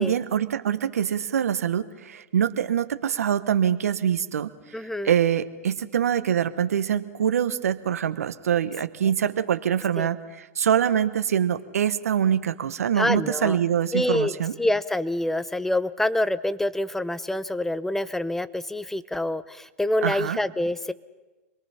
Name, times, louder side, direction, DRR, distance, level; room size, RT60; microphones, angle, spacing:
voice 1, 0.0-4.5 5.0-14.5 20.0-20.4, right 9 dB, 80° right, 11 dB, 1.1 m, -24 dB
voice 2, 4.7-5.1 10.0-10.1 12.9-13.6 13.9-20.9, left 1 dB, 5° left, 15 dB, 0.8 m, -26 dB
26.5 x 22.5 x 5.7 m, 1.1 s
hypercardioid pair, 105°, 8 cm